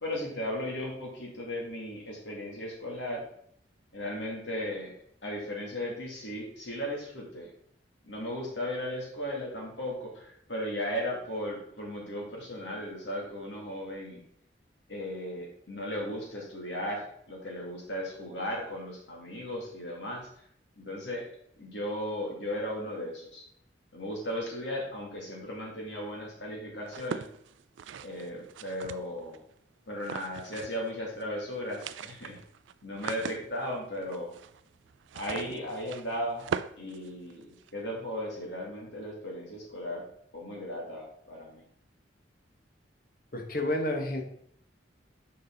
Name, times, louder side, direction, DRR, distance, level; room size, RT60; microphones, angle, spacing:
voice 1, 0.0-3.2 3.9-5.0 5.2-7.5 8.0-14.2 14.9-20.3 20.8-21.3 21.6-23.4 23.9-27.3 28.0-29.4 29.9-32.4 32.8-34.3 35.1-36.5 36.8-40.1 40.3-41.7, equal, 75° left, -2 dB, 2.3 m, -36 dB
sound 1, 26.9-29.4 30.0-30.9 31.2-31.3 31.6-37.7, right 6 dB, 90° right, 0.3 m, -40 dB
voice 2, 43.3-44.2, left 1 dB, 50° left, 3 dB, 1.2 m, -30 dB
6.6 x 5.5 x 3.9 m, 0.68 s
head